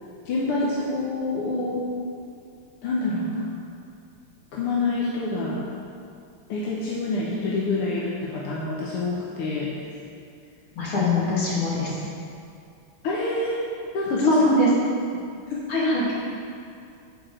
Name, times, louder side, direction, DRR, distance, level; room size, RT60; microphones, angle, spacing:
voice 1, 0.3-1.9 2.8-3.6 4.5-5.7 6.5-9.7 13.0-13.6 13.9-14.4 15.5-15.6, left 2 dB, 90° left, -5 dB, 1.9 m, -26 dB
voice 2, 10.8-11.9 14.3-14.7 15.7-16.1, left 2 dB, 70° left, -6 dB, 2.9 m, -22 dB
9.2 x 5.2 x 6.3 m, 2.4 s
omnidirectional pair, 2.4 m